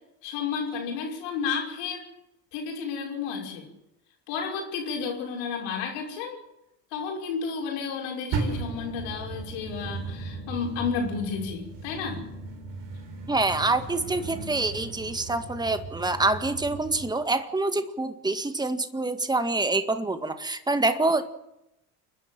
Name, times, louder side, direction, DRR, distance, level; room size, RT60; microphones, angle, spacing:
voice 1, 0.2-2.0 2.5-3.7 4.3-6.4 6.9-12.2, left 5 dB, 75° left, 0 dB, 6.0 m, -32 dB
sound 1, 8.3-17.1, right 4 dB, 65° right, 4.1 m, -36 dB
voice 2, 13.3-21.2, right 2 dB, 10° right, 9 dB, 1.8 m, -26 dB
29.5 x 10.0 x 8.9 m, 0.87 s
hypercardioid pair, 60°, 46 cm